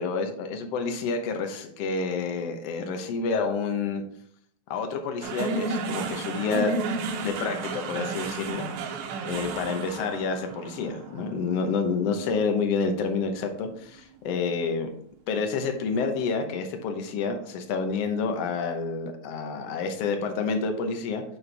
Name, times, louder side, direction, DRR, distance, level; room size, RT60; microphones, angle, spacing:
voice 1, 0.0-4.0 4.7-6.7 7.2-8.7 9.2-14.9 15.3-21.2, left 4 dB, 85° left, 5 dB, 1.4 m, -28 dB
sound 1, 5.2-13.7, right 3 dB, 75° right, 2.0 m, -33 dB
11.0 x 4.4 x 3.3 m, 0.63 s
omnidirectional pair, 4.1 m